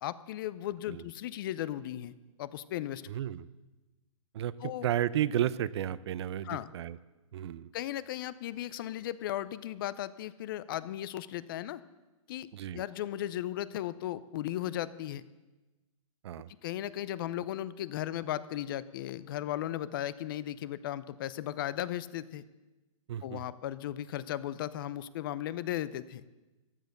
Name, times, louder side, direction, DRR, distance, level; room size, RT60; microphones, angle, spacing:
voice 1, 0.0-2.1 2.4-3.0 4.6-4.9 6.4-6.7 7.7-11.8 12.3-12.5 12.7-15.2 16.6-22.4 23.2-26.2, left 13 dB, 40° left, 17 dB, 0.6 m, -36 dB
voice 2, 3.1-3.5 4.3-7.0 7.3-7.7 12.5-12.8 16.2-16.5 23.1-23.4, right 11 dB, 55° right, 18 dB, 0.5 m, -33 dB
15.0 x 10.5 x 6.6 m, 1.1 s
hypercardioid pair, 150°, 17 cm